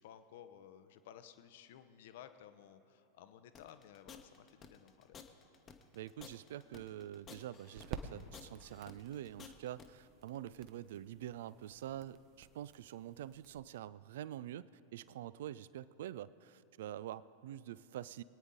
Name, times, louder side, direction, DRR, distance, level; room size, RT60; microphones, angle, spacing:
voice 1, 0.0-5.2, left 10 dB, 55° left, 10 dB, 0.7 m, -56 dB
sound 1, 3.5-9.9, left 7 dB, 25° left, 1.0 m, -54 dB
sound 2, 5.7-13.6, right 6 dB, 35° right, 0.8 m, -53 dB
voice 2, 5.9-18.2, right 12 dB, 55° right, 19 dB, 0.3 m, -46 dB
23.0 x 9.3 x 3.8 m, 2.8 s
figure-of-eight pair, 90°, 0 cm